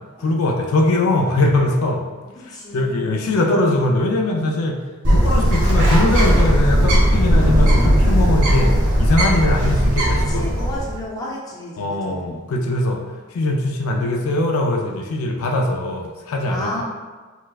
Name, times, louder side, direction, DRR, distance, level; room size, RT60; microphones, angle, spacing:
voice 1, 0.2-2.0 2.7-4.8 5.1-8.7 9.0-10.7 11.8-13.0 13.3-16.8, left 2 dB, 80° left, 2 dB, 0.4 m, -21 dB
voice 2, 2.4-3.2 10.3-12.5 16.5-16.8, left 1 dB, 15° left, -4 dB, 0.5 m, -33 dB
Bird, 5.0-11.0, equal, 85° right, 1.0 m, -16 dB
4.4 x 2.0 x 2.3 m, 1.4 s
head